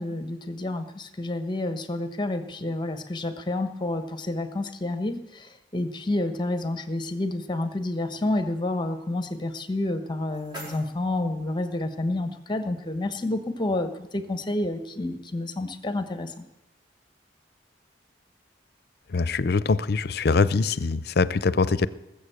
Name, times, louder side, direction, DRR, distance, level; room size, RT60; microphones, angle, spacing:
voice 1, 0.0-16.4, left 2 dB, 25° left, 10 dB, 1.1 m, -29 dB
sound 1, 9.8-11.8, equal, 30° right, 4.8 m, -46 dB
voice 2, 19.1-21.9, left 4 dB, 60° left, 17 dB, 0.6 m, -23 dB
19.5 x 7.2 x 7.9 m, 0.96 s
head